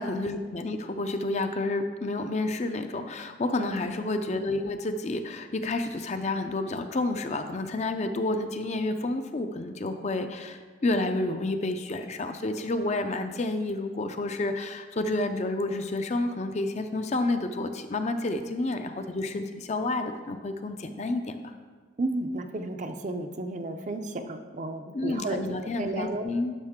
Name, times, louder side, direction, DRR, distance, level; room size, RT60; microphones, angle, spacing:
voice 1, 0.0-21.5 24.9-26.5, left 2 dB, 35° left, 7 dB, 0.5 m, -30 dB
voice 2, 3.6-3.9 22.0-25.4 25.8-26.2, right 2 dB, 40° right, 7 dB, 0.5 m, -33 dB
11.5 x 5.4 x 3.6 m, 1.5 s
head